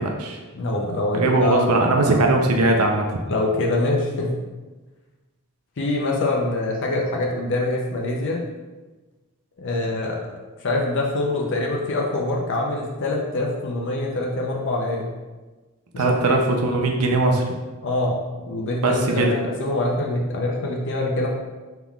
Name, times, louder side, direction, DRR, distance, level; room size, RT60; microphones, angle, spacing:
voice 1, 0.0-0.4 1.1-3.2 16.0-17.4 18.8-19.3, right 2 dB, 85° right, 2 dB, 0.6 m, -20 dB
voice 2, 0.5-1.6 2.0-2.2 3.3-4.3 5.8-8.4 9.6-10.2 10.6-15.1 15.9-16.4 17.8-21.3, left 2 dB, 55° left, -1 dB, 0.6 m, -24 dB
5.7 x 3.6 x 2.3 m, 1.2 s
head